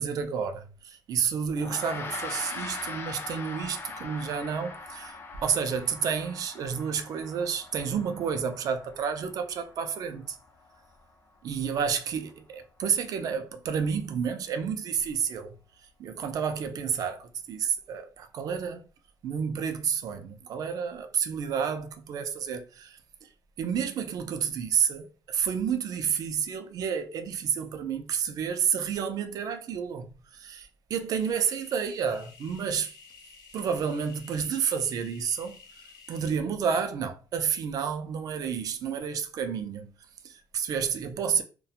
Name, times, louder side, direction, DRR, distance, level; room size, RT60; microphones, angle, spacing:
voice 1, 0.0-10.4 11.4-15.5 16.0-18.9 19.2-23.3 23.6-32.9 33.5-35.6 36.1-39.9 40.2-41.4, right 7 dB, 55° right, 0.3 m, -30 dB
Gong, 1.6-11.1, left 4 dB, 30° left, 0.3 m, -41 dB
sound 1, 31.2-36.3, left 5 dB, 60° left, 0.7 m, -52 dB
2.4 x 2.1 x 2.8 m
cardioid pair, 175°, 7 cm